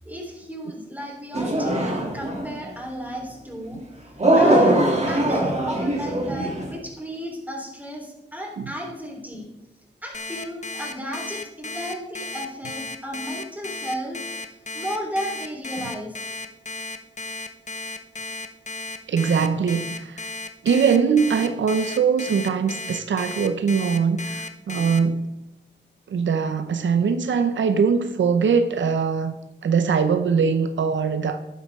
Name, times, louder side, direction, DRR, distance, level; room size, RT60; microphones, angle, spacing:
voice 1, 0.1-9.5 10.0-16.2, equal, 10° right, 3.6 m, -34 dB
sound 1, 1.3-2.6 4.2-6.7, right 1 dB, 35° right, 2.6 m, -21 dB
Alarm, 10.1-25.0, left 2 dB, 40° left, 0.9 m, -34 dB
voice 2, 19.1-20.3 20.6-25.3 26.1-29.4 29.6-31.4, right 6 dB, 90° right, 0.7 m, -22 dB
11.5 x 9.6 x 3.6 m
cardioid pair, 65°, 19 cm